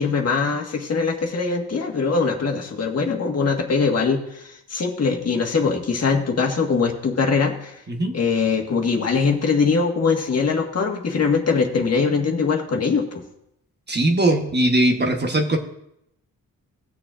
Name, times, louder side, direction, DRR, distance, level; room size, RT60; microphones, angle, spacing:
voice 1, 0.0-7.8 8.1-13.2, left 5 dB, 45° left, 1 dB, 1.6 m, -22 dB
voice 2, 13.9-15.6, right 1 dB, 30° right, 3 dB, 1.1 m, -20 dB
18.5 x 7.0 x 2.5 m, 0.78 s
wide cardioid pair, 120°, 34 cm